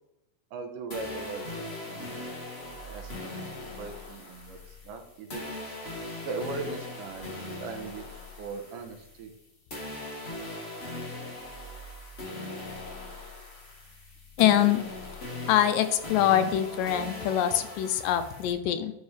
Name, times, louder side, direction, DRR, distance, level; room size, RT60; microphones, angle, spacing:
voice 1, 0.5-5.5 6.2-8.1 8.4-9.3, right 4 dB, 80° right, 5 dB, 2.4 m, -40 dB
sound 1, 0.9-9.4 9.7-18.5, left 2 dB, 45° left, 0.8 m, -40 dB
voice 2, 14.4-14.8 15.5-18.9, left 11 dB, 85° left, 10 dB, 2.2 m, -24 dB
11.0 x 4.9 x 3.2 m, 0.91 s
omnidirectional pair, 3.9 m